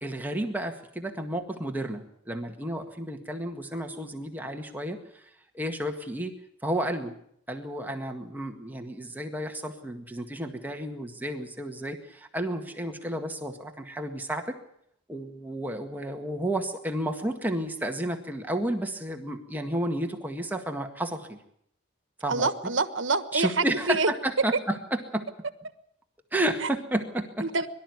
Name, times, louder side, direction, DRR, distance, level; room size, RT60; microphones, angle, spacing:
voice 1, 0.0-5.0 5.5-6.3 6.6-7.2 7.5-14.6 15.1-21.4 22.2-22.5 23.3-25.3 26.3-27.5, right 1 dB, 10° right, 4 dB, 1.8 m, -31 dB
voice 2, 22.3-24.1 26.6-26.7 27.4-27.7, right 3 dB, 70° right, 12 dB, 1.4 m, -26 dB
23.0 x 12.5 x 9.6 m, 0.71 s
head